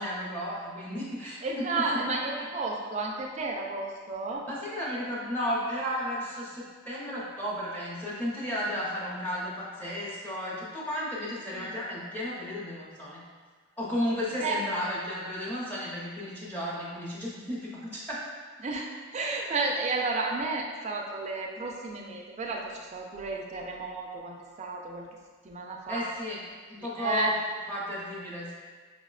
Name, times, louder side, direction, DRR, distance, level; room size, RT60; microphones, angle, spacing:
voice 1, 0.0-2.0 4.5-13.2 13.8-18.2 25.9-26.4 26.7-27.3 27.7-28.5, equal, 10° left, -8 dB, 0.6 m, -33 dB
voice 2, 1.4-4.4 11.5-11.7 14.4-14.6 18.6-25.1 25.4-26.0 26.8-27.3, right 3 dB, 30° right, 0 dB, 0.3 m, -32 dB
5.4 x 2.1 x 2.3 m, 1.5 s
head